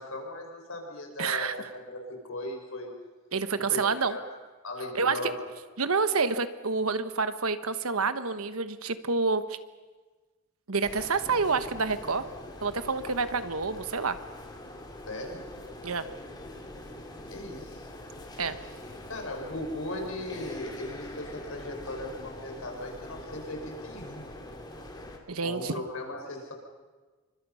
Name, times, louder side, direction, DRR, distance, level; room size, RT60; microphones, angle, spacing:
voice 1, 0.0-1.5 1.9-2.9 3.7-4.3 4.6-5.4 15.1-15.4 17.3-17.9 19.1-24.2 25.4-26.5, left 1 dB, 70° left, 1 dB, 5.8 m, -38 dB
voice 2, 1.2-1.5 3.3-4.2 4.9-5.3 5.8-9.6 10.7-12.3 12.6-14.2 15.8-16.1 18.4-18.6 25.3-25.7, right 4 dB, 80° right, 11 dB, 1.3 m, -28 dB
sound 1, 10.8-25.2, left 1 dB, 20° left, 2.8 m, -43 dB
28.5 x 24.5 x 5.7 m, 1.3 s
head